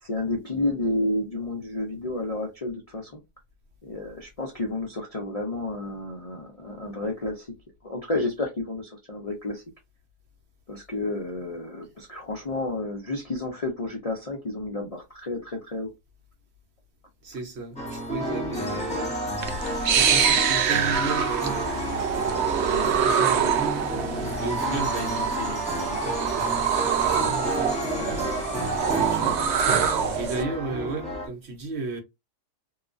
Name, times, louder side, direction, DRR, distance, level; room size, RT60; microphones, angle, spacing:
voice 1, 0.0-3.2 3.8-7.5 7.8-9.6 10.7-15.9 27.5-27.6, left 2 dB, 65° left, 0.3 m, -31 dB
voice 2, 17.2-19.3 19.8-23.8 24.4-28.5 28.9-29.8 30.1-32.0, right 2 dB, 50° right, 0.9 m, -35 dB
sound 1, 17.8-31.3, right 1 dB, 5° left, 0.7 m, -31 dB
sound 2, 19.4-30.4, right 7 dB, 75° right, 0.6 m, -25 dB
2.8 x 2.3 x 2.5 m
omnidirectional pair, 1.7 m